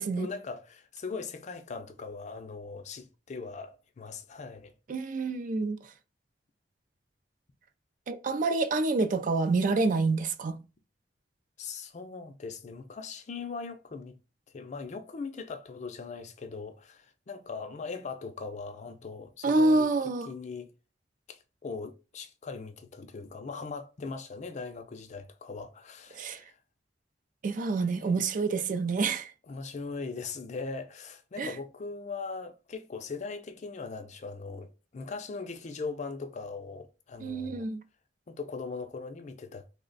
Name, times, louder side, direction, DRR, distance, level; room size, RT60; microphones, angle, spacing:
voice 1, 0.0-4.7 11.6-14.2 14.5-19.9 20.3-20.7 21.3-26.6 28.0-28.3 29.5-37.7 38.3-39.7, left 4 dB, 40° left, 0.4 m, -40 dB
voice 2, 4.9-5.8 8.1-10.6 19.4-20.3 26.1-26.4 27.4-29.3 31.4-31.5 37.2-37.8, right 3 dB, 50° right, 0.4 m, -27 dB
3.2 x 2.1 x 3.8 m
head